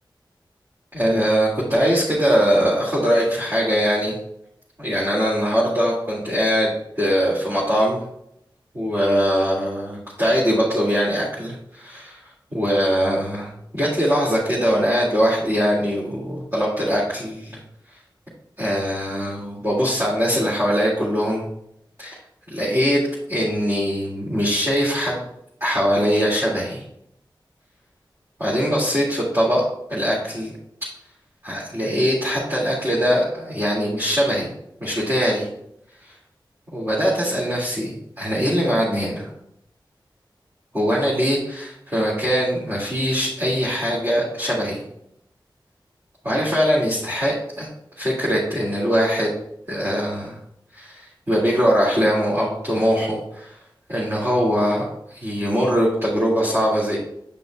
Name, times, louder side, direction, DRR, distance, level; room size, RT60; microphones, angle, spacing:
voice 1, 0.9-4.1 4.8-8.0 8.7-12.2 12.5-17.6 18.6-21.5 22.0-22.2 22.5-23.0 23.3-25.2 25.6-26.8 28.4-29.6 29.9-30.5 31.4-34.5 34.8-35.5 36.7-39.3 40.7-44.8 46.2-47.7 48.0-49.3 49.7-50.3 50.7-53.6 53.9-57.0, equal, 30° right, -8 dB, 2.1 m, -22 dB
8.6 x 5.4 x 2.2 m, 0.76 s
wide cardioid pair, 60°, 8 cm